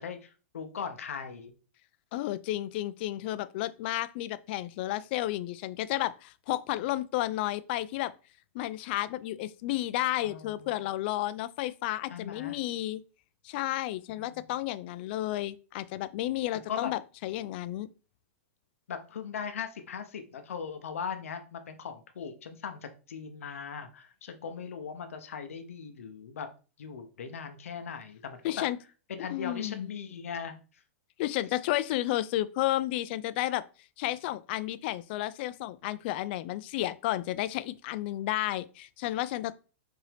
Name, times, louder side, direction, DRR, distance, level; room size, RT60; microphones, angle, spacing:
voice 1, 0.0-1.5 10.2-10.7 12.1-12.6 14.1-14.4 16.7-17.0 18.9-26.5 26.8-28.6 29.1-30.8, left 6 dB, 85° left, 0.7 m, -39 dB
voice 2, 2.1-8.1 8.5-13.0 13.4-17.9 28.4-28.8 29.3-29.9 31.2-33.6 34.0-39.6, left 15 dB, 50° left, 0.3 m, -32 dB
4.8 x 2.7 x 3.4 m
hypercardioid pair, 130°, 7 cm